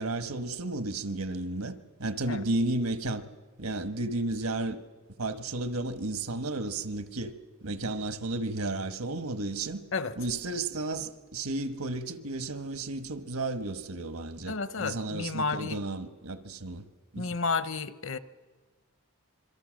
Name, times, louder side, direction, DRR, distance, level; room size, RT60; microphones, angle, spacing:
voice 1, 0.0-3.2 3.6-4.8 5.2-7.3 7.6-9.8 10.2-16.8 17.1-17.3, right 2 dB, 85° right, 1.4 m, -33 dB
voice 2, 14.5-15.8 17.2-18.2, left 4 dB, 60° left, 0.9 m, -31 dB
26.5 x 23.0 x 6.4 m
head